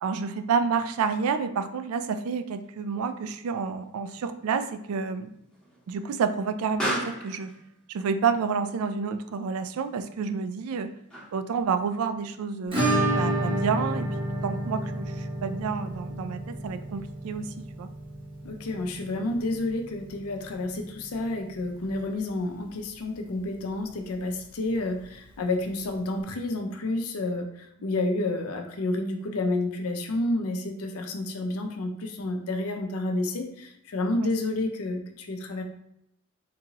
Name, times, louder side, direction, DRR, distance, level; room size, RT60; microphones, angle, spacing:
voice 1, 0.0-5.3 5.9-7.5 7.9-10.9 11.3-12.8 13.2-14.1 14.4-17.9 34.2-34.3, right 5 dB, 80° right, 10 dB, 0.3 m, -29 dB
Explosion, 2.6-11.6, right 1 dB, 5° left, 1.2 m, -40 dB
Acoustic guitar / Strum, 12.7-21.3 21.6-21.7 22.0-22.1 22.4-22.5 24.6-24.7 25.8-25.9, right 1 dB, 25° right, 1.1 m, -30 dB
voice 2, 18.4-35.6, left 2 dB, 85° left, 5 dB, 0.5 m, -30 dB
3.7 x 2.8 x 2.9 m, 0.79 s
head